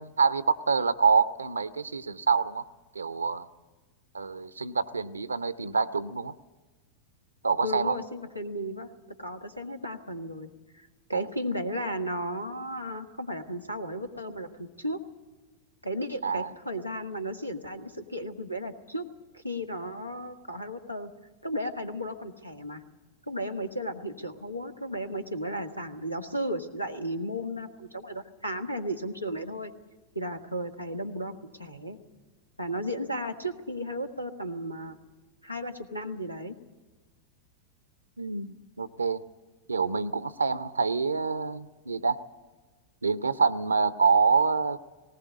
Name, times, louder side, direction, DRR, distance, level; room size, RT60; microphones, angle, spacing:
voice 1, 0.0-2.6 2.9-3.5 4.1-6.3 7.4-8.0 11.1-11.3 16.2-16.5 38.2-39.2 39.7-42.2 43.0-44.8, right 5 dB, 75° right, 15 dB, 0.6 m, -26 dB
voice 2, 7.6-8.9 9.2-10.5 10.7-15.0 15.8-19.1 19.3-21.1 21.4-22.8 23.3-29.7 30.1-31.3 31.6-32.0 32.6-35.0 35.4-36.6, equal, 90° left, 7 dB, 1.3 m, -34 dB
19.0 x 18.5 x 8.3 m, 1.3 s
figure-of-eight pair, 90°, 0 cm